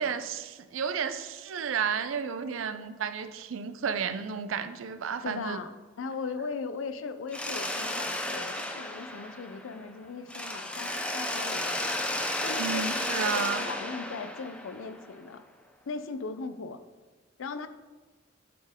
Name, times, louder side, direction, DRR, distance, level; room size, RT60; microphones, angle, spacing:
voice 1, 0.0-5.6 12.6-13.6, right 6 dB, 85° right, 11 dB, 0.4 m, -32 dB
voice 2, 5.2-11.9 12.4-12.9 13.2-15.4 15.9-16.8 17.4-17.7, left 4 dB, 85° left, 10 dB, 0.5 m, -38 dB
Mechanisms, 7.3-9.9 10.3-15.1, left 1 dB, 5° left, 0.4 m, -33 dB
9.2 x 4.4 x 3.6 m, 1.3 s
head